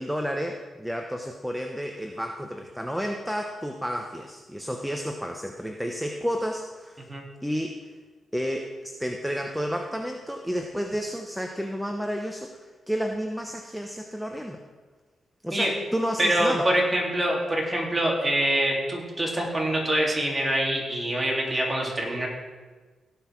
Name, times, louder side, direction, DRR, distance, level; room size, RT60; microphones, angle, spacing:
voice 1, 0.0-7.0 7.4-7.8 8.3-14.6 15.4-16.7, equal, ahead, 3 dB, 0.9 m, -31 dB
voice 2, 16.2-22.3, right 1 dB, 20° right, -2 dB, 3.3 m, -25 dB
17.0 x 5.7 x 6.1 m, 1.3 s
cardioid pair, 85°, 0 cm